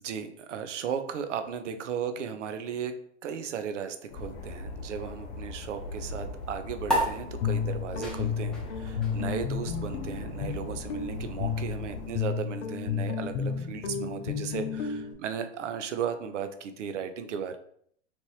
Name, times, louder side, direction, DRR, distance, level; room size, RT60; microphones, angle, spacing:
voice 1, 0.0-17.6, right 7 dB, 85° right, 8 dB, 0.6 m, -36 dB
sound 1, 4.1-12.1, left 2 dB, 40° left, 0.9 m, -40 dB
sound 2, 6.8-13.7, equal, ahead, 0.8 m, -36 dB
Guitar, 7.1-15.1, left 7 dB, 70° left, 0.7 m, -32 dB
3.0 x 2.6 x 3.1 m, 0.65 s
hypercardioid pair, 115°, 35 cm